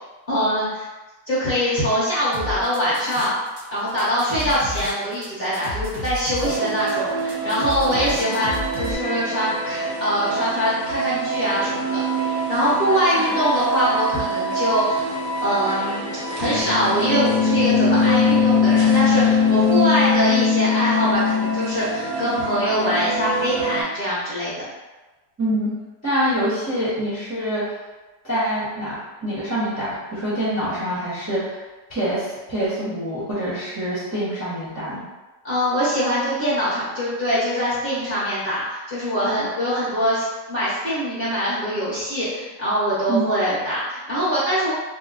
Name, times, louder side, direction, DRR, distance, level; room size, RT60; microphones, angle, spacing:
voice 1, 0.3-0.9 1.3-3.3 3.7-15.0 15.4-16.1 16.4-24.7 35.4-44.7, equal, 45° left, -10 dB, 0.8 m, -23 dB
sound 1, 2.3-3.6 3.9-8.9, left 2 dB, 50° right, 0.7 m, -32 dB
sound 2, 6.4-23.8, left 2 dB, 80° right, 1.3 m, -22 dB
voice 2, 25.4-25.7 26.0-27.7 28.2-31.6 31.9-35.0 43.1-43.2, right 1 dB, 15° right, -10 dB, 0.6 m, -25 dB
3.0 x 2.1 x 3.5 m, 1.2 s
omnidirectional pair, 1.8 m